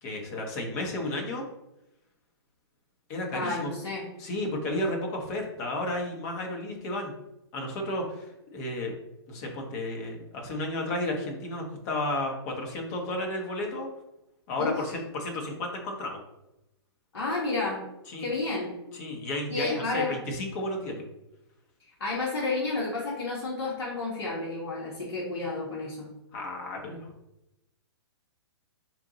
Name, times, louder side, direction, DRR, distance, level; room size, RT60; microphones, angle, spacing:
voice 1, 0.0-1.5 3.1-3.7 4.2-7.1 7.5-8.9 9.3-13.9 14.5-16.2 18.1-18.3 18.9-21.1 26.3-27.1, left 1 dB, 40° left, 1 dB, 1.2 m, -32 dB
voice 2, 3.3-4.0 14.6-14.8 17.1-17.8 18.2-18.7 19.5-20.1 22.0-26.1, left 3 dB, 80° left, -5 dB, 1.3 m, -31 dB
4.5 x 2.5 x 3.9 m, 0.91 s
hypercardioid pair, 145°, 14 cm